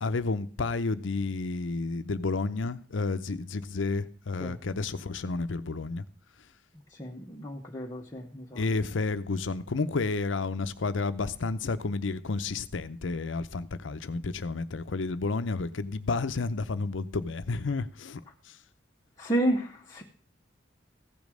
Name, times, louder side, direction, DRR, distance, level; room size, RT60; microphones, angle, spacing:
voice 1, 0.0-6.0 8.6-18.2, left 3 dB, 80° left, 0.7 m, -31 dB
voice 2, 7.0-8.6 19.2-20.0, right 1 dB, 20° left, 1.1 m, -31 dB
15.0 x 5.3 x 6.3 m
head